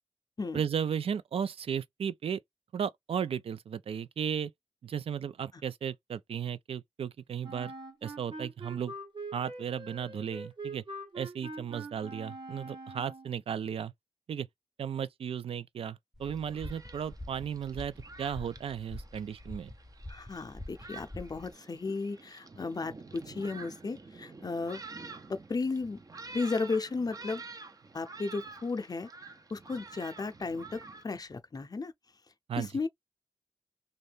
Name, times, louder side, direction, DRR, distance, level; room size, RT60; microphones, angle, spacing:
voice 1, 0.5-2.4 2.7-4.5 4.8-7.7 8.0-8.9 9.3-10.8 11.1-13.9 14.3-14.5 14.8-19.7 32.5-32.7, right 8 dB, 80° right, 0.4 m, -35 dB
Wind instrument woodwind instrument, 7.4-13.4, right 2 dB, 55° right, 1.3 m, -43 dB
sound 1, 16.2-21.5, left 1 dB, ahead, 0.7 m, -46 dB
Thunderstorm, 16.2-31.0, right 3 dB, 40° right, 0.6 m, -49 dB
voice 2, 20.1-24.8 25.3-26.0 26.3-27.4 27.9-29.1 29.5-31.9 32.6-32.9, left 3 dB, 40° left, 0.6 m, -34 dB
2.7 x 2.4 x 3.2 m
cardioid pair, 65°, 10 cm